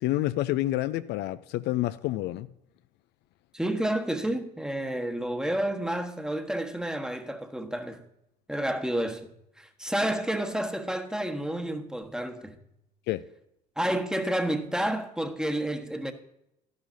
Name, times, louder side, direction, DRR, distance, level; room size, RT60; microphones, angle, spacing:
voice 1, 0.0-2.5 13.1-13.2, left 16 dB, 60° left, 0.5 m, -28 dB
voice 2, 3.5-8.0 8.5-9.3 9.6-12.6 13.8-16.1, right 1 dB, 5° right, 1.3 m, -30 dB
12.5 x 10.5 x 2.7 m
hypercardioid pair, 65°, 20 cm